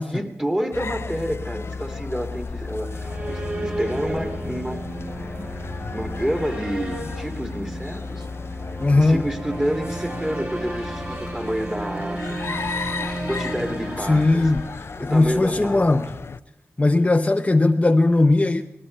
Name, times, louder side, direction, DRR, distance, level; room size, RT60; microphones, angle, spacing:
voice 1, 0.1-4.9 5.9-8.2 8.9-12.4 13.3-14.5 15.0-15.8, equal, 15° right, 2.6 m, -29 dB
sound 1, 0.7-16.4, left 4 dB, 55° left, 0.5 m, -34 dB
sound 2, 2.6-15.4, right 1 dB, 40° right, 6.3 m, -33 dB
voice 2, 8.8-9.3 14.1-14.6 15.0-16.1 16.8-18.6, left 2 dB, 25° left, 0.7 m, -18 dB
20.0 x 19.0 x 3.3 m
cardioid pair, 50°, 5 cm